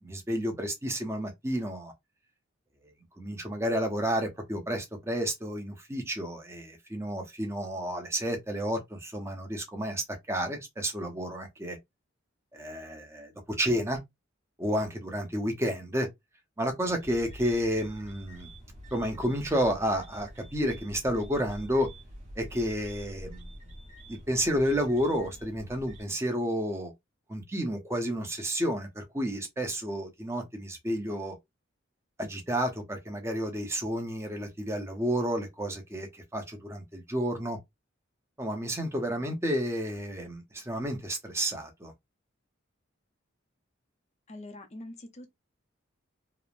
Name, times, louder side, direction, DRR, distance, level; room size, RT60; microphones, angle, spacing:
voice 1, 0.0-1.9 3.2-11.8 12.5-13.3 13.6-14.0 14.6-16.1 16.6-18.5 18.9-21.9 22.4-23.5 24.1-26.9 27.3-31.3 32.2-37.6 38.4-41.9, equal, 15° right, 0.7 m, -31 dB
sound 1, 17.0-26.0, equal, 35° right, 1.0 m, -46 dB
voice 2, 44.3-45.4, left 1 dB, 35° left, 0.5 m, -44 dB
3.0 x 2.0 x 2.4 m
head